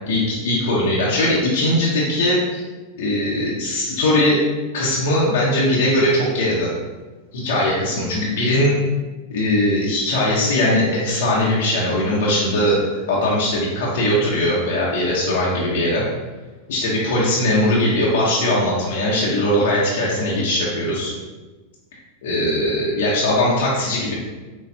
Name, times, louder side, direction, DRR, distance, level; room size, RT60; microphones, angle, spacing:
voice 1, 0.1-2.6 3.0-4.4 4.7-6.7 7.3-8.7 9.3-12.8 13.1-16.0 16.7-21.1 22.2-24.1, left 1 dB, 80° left, -6 dB, 1.0 m, -20 dB
6.3 x 2.4 x 2.8 m, 1.3 s
hypercardioid pair, 120°, 0 cm